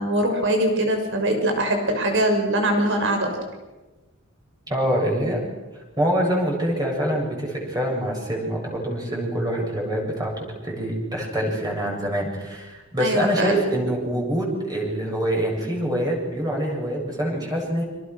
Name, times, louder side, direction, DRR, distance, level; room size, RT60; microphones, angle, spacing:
voice 1, 0.0-3.3 13.0-13.5, right 1 dB, 60° right, 4 dB, 6.2 m, -22 dB
voice 2, 4.7-5.5 6.0-17.8, right 1 dB, 20° right, -1 dB, 7.9 m, -25 dB
29.5 x 26.5 x 6.4 m, 1.1 s
head